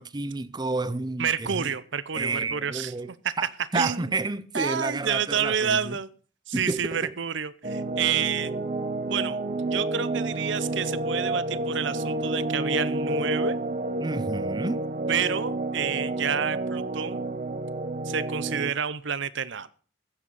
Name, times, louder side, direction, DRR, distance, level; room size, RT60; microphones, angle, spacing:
voice 1, 0.0-1.7 2.1-3.1 3.4-6.0 6.5-7.1 14.0-14.8, right 3 dB, 20° right, 0.6 m, -30 dB
voice 2, 1.2-2.9 3.2-3.3 3.7-4.1 4.5-6.1 6.5-8.5 9.1-13.6 15.1-17.2 18.0-19.7, right 7 dB, 60° right, 0.6 m, -29 dB
sound 1, 7.6-18.7, right 2 dB, 40° right, 0.9 m, -29 dB
15.0 x 7.6 x 5.4 m
head